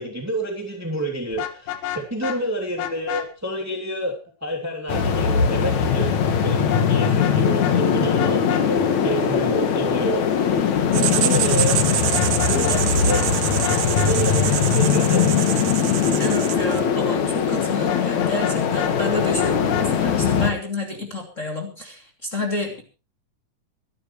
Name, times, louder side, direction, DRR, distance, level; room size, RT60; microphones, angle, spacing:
voice 1, 0.0-11.9 12.4-13.4 13.6-15.7, right 1 dB, 5° right, 0 dB, 2.7 m, -29 dB
Vehicle horn car horn honking, 1.3-2.4 2.8-3.3 6.7-7.4 7.6-7.7 8.2-8.6 12.0-12.8 13.1-13.3 13.6-14.1 17.9-18.9 19.4-19.9, left 12 dB, 85° left, 3.0 m, -29 dB
sound 1, 4.9-20.5, left 7 dB, 65° left, 2.9 m, -21 dB
Writing, 10.9-16.9, right 11 dB, 70° right, 2.3 m, -26 dB
voice 2, 16.2-22.8, left 2 dB, 25° left, 0 dB, 3.0 m, -29 dB
24.5 x 12.0 x 3.2 m, 0.31 s
omnidirectional pair, 3.7 m